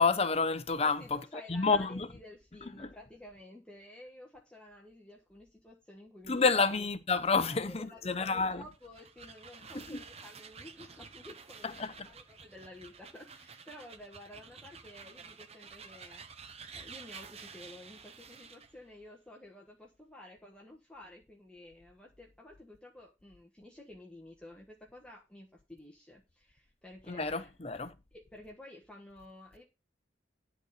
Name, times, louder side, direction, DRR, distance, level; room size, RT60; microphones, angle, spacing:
voice 1, 0.0-1.2 1.5-2.1 2.8-2.9 6.3-8.6 9.9-10.0 11.8-11.9 27.1-27.9, left 4 dB, 35° left, 0.8 m, -29 dB
voice 2, 0.8-6.7 7.4-27.5 28.1-29.6, left 1 dB, 5° left, 1.3 m, -52 dB
sound 1, 8.7-18.8, right 5 dB, 35° right, 0.8 m, -51 dB
11.0 x 4.2 x 6.6 m
head